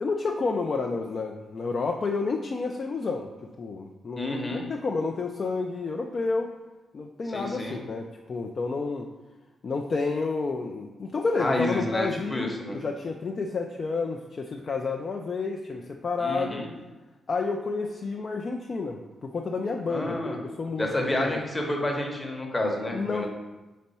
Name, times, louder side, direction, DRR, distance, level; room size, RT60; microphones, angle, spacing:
voice 1, 0.0-3.3 3.6-6.5 6.9-9.1 9.6-16.6 17.3-20.9 21.2-21.4 22.9-23.3, left 4 dB, 35° left, 2 dB, 0.3 m, -30 dB
voice 2, 4.2-4.7 7.3-7.8 11.4-12.8 16.2-16.7 19.9-20.4 20.8-23.3, left 1 dB, 15° left, 1 dB, 0.8 m, -29 dB
4.4 x 4.1 x 5.4 m, 1.2 s
wide cardioid pair, 175°, 0 cm